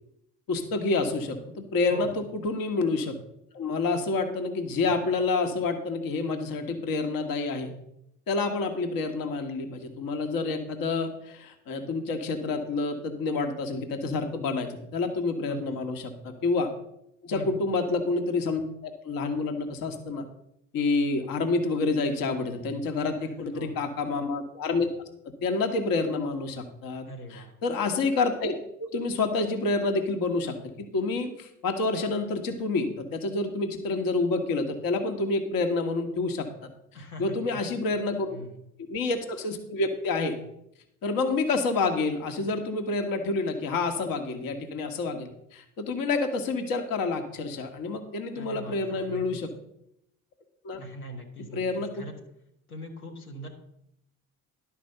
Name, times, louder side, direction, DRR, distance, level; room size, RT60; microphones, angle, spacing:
voice 1, 0.5-3.2 3.5-7.7 8.3-16.7 17.2-20.2 20.7-24.9 25.4-27.0 27.3-30.6 30.9-36.7 37.2-38.4 38.9-40.4 41.0-49.5 50.6-50.8 51.5-51.9, left 3 dB, 50° left, 6 dB, 1.5 m, -28 dB
voice 2, 15.5-15.8 17.3-17.6 23.0-23.8 27.1-27.5 36.9-37.6 38.3-38.5 48.3-49.4 50.8-52.1 52.7-53.5, equal, 85° left, 1 dB, 1.7 m, -42 dB
11.5 x 5.3 x 6.7 m, 0.79 s
figure-of-eight pair, 55°, 43 cm